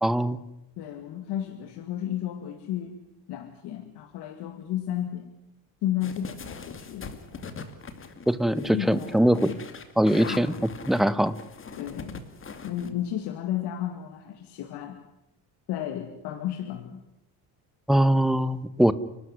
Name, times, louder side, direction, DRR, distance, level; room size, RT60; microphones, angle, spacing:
voice 1, 0.0-0.4 8.3-9.5 10.0-10.5 10.9-11.4 17.9-18.9, right 1 dB, ahead, 14 dB, 1.0 m, -22 dB
voice 2, 0.8-3.0 3.3-5.3 5.8-7.5 8.5-9.6 10.2-10.5 11.8-12.2 12.6-15.0 15.7-17.0, left 11 dB, 80° left, 6 dB, 2.3 m, -33 dB
sound 1, 6.0-12.9, left 5 dB, 30° left, 2.4 m, -41 dB
30.0 x 13.0 x 9.6 m, 0.87 s
cardioid pair, 130°, 40 cm